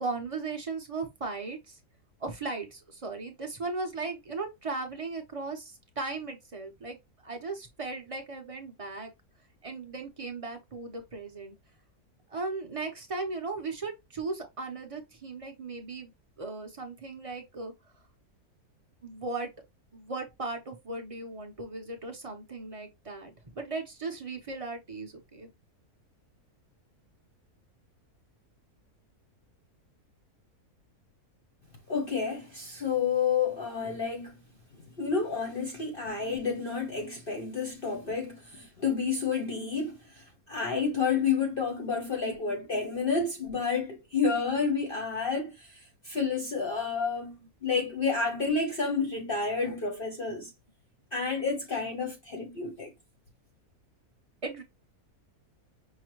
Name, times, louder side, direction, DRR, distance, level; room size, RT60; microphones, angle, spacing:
voice 1, 0.0-1.8 2.2-7.0 7.2-9.1 9.6-11.5 12.3-16.1 16.4-17.7 19.0-19.5 19.9-25.5 54.4-54.6, right 3 dB, 45° right, 0.4 m, -37 dB
voice 2, 31.9-34.3 35.0-50.5 51.1-52.9, left 5 dB, 50° left, 0.7 m, -30 dB
5.6 x 2.1 x 3.0 m
omnidirectional pair, 1.6 m